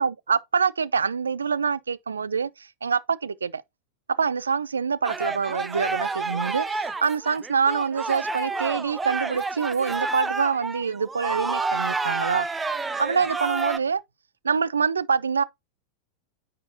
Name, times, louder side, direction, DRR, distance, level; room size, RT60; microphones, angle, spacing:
voice 1, 0.0-3.6 4.2-12.5 13.0-14.0 14.4-15.4, right 6 dB, 75° right, 0.3 m, -25 dB
sound 1, 5.0-13.8, right 3 dB, 10° right, 0.5 m, -29 dB
9.3 x 4.4 x 2.7 m
figure-of-eight pair, 90°, 0 cm